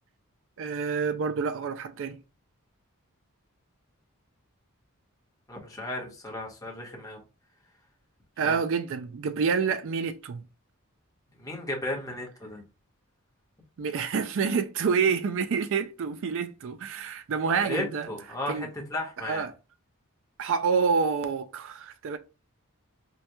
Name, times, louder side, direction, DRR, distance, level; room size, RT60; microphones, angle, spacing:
voice 1, 0.6-2.2 8.4-10.5 13.8-18.1 18.5-18.7 19.3-19.5 20.4-22.2, right 5 dB, 60° right, 0.4 m, -28 dB
voice 2, 5.5-7.2 8.4-8.6 11.4-12.6 17.6-19.5, left 1 dB, 15° left, 0.9 m, -35 dB
4.6 x 2.2 x 2.7 m
head